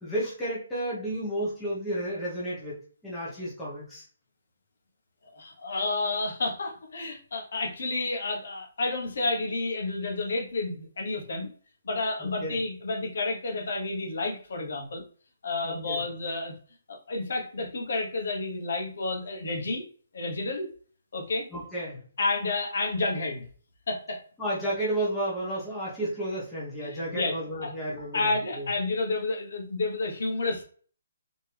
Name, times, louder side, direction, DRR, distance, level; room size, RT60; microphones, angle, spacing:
voice 1, 0.0-2.7 3.0-4.0 12.2-12.6 15.6-16.0 21.5-22.0 24.4-28.7, right 1 dB, 5° left, -9 dB, 1.1 m, -32 dB
voice 2, 5.3-11.5 11.8-15.0 15.4-16.5 16.9-19.8 20.1-20.7 21.1-21.5 22.2-23.4 23.9-24.2 26.8-27.3 27.6-27.7 28.1-30.6, left 3 dB, 55° left, 1 dB, 1.2 m, -30 dB
4.3 x 3.0 x 3.4 m, 0.43 s
hypercardioid pair, 175°, 0 cm